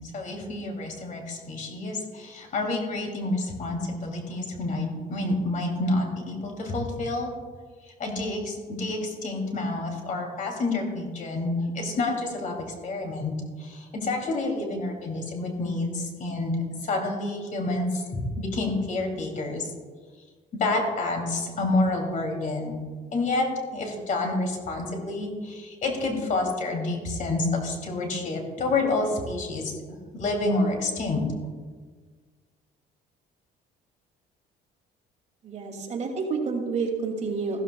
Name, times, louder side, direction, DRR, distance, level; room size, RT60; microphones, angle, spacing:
voice 1, 0.1-7.3 8.0-13.3 13.6-16.6 16.8-19.7 20.6-22.8 23.1-29.7 30.1-31.2, left 2 dB, 50° left, 2 dB, 2.8 m, -28 dB
voice 2, 35.4-37.6, right 4 dB, 45° right, 1 dB, 2.5 m, -29 dB
15.0 x 13.0 x 2.3 m, 1.5 s
cardioid pair, 110°, 17 cm